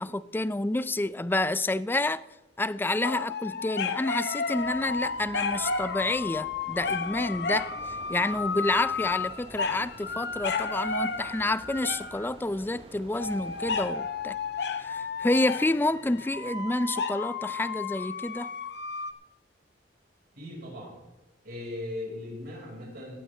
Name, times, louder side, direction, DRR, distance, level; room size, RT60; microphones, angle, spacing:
voice 1, 0.0-2.2 2.6-7.7 8.1-14.4 14.8-18.5, left 2 dB, 10° left, 0.4 m, -29 dB
sound 1, 3.0-12.3 13.2-19.1, left 5 dB, 65° left, 0.9 m, -32 dB
sound 2, 4.5-13.9, right 1 dB, 35° right, 1.2 m, -49 dB
sound 3, 6.9-16.6, right 1 dB, 80° right, 2.7 m, -57 dB
voice 2, 20.4-21.0 21.4-23.2, left 1 dB, 60° right, 5.5 m, -38 dB
17.0 x 12.5 x 3.4 m
head